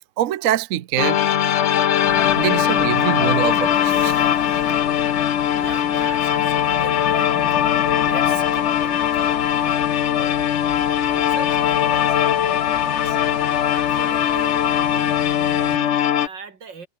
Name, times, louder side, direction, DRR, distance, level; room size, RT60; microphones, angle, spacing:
voice 1, 0.2-1.2 2.4-4.8, right 12 dB, 60° right, 0.9 m, -24 dB
sound 1, 1.0-16.3, left 10 dB, 60° left, 0.8 m, -20 dB
sound 2, 2.0-15.8, left 6 dB, 75° left, 3.0 m, -36 dB
voice 2, 5.2-16.9, right 5 dB, 80° right, 3.3 m, -40 dB
omnidirectional pair, 2.0 m